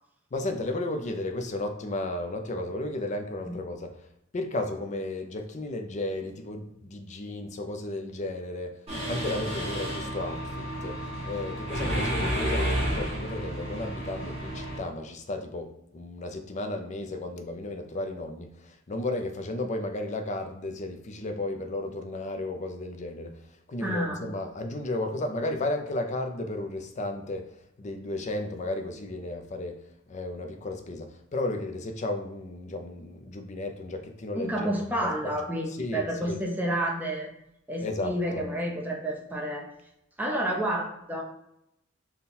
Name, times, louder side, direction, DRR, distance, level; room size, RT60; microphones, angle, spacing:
voice 1, 0.3-3.9 4.3-8.7 9.1-11.0 11.2-23.3 23.7-27.5 27.8-29.8 30.1-35.1 35.8-36.4 37.8-38.4, left 2 dB, 35° left, 6 dB, 0.5 m, -34 dB
Mechanisms, 8.9-14.8, equal, 30° right, 1.2 m, -31 dB
voice 2, 23.8-24.2 34.3-37.3 37.7-39.7 40.2-41.2, right 1 dB, 10° right, -1 dB, 0.6 m, -30 dB
4.1 x 2.2 x 3.7 m, 0.79 s
head